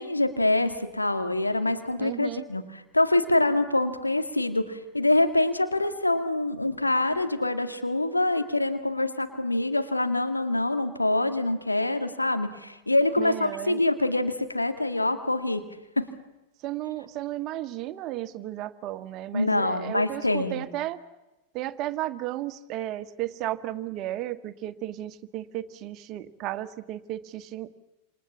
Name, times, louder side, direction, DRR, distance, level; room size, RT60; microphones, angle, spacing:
voice 1, 0.0-15.7 16.0-16.1 19.3-20.7, left 2 dB, 85° left, 8 dB, 2.1 m, -25 dB
voice 2, 2.0-2.4 13.2-13.8 16.6-21.0 21.5-27.7, right 14 dB, 40° right, 12 dB, 1.5 m, -34 dB
28.0 x 27.0 x 7.3 m, 1.0 s
figure-of-eight pair, 90°, 0 cm